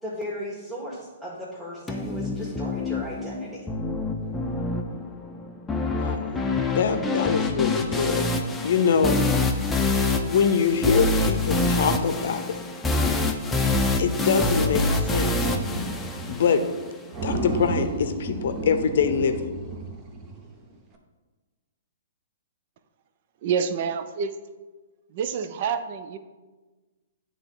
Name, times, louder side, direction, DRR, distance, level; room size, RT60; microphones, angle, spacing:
voice 1, 0.0-3.7, equal, 5° right, -8 dB, 1.5 m, -36 dB
sound 1, 1.9-16.9, left 2 dB, 10° left, 0.6 m, -26 dB
voice 2, 5.9-8.3 8.6-9.5 10.2-12.4 14.0-15.3 16.3-16.6 17.2-19.5, left 6 dB, 60° left, 8 dB, 0.6 m, -24 dB
sound 2, 15.4-16.4 16.7-16.8 17.1-20.5, right 3 dB, 30° right, 0.9 m, -32 dB
voice 3, 23.4-24.3 25.1-26.2, right 6 dB, 50° right, 11 dB, 0.5 m, -27 dB
9.7 x 3.4 x 3.7 m, 1.3 s
hypercardioid pair, 120°, 0 cm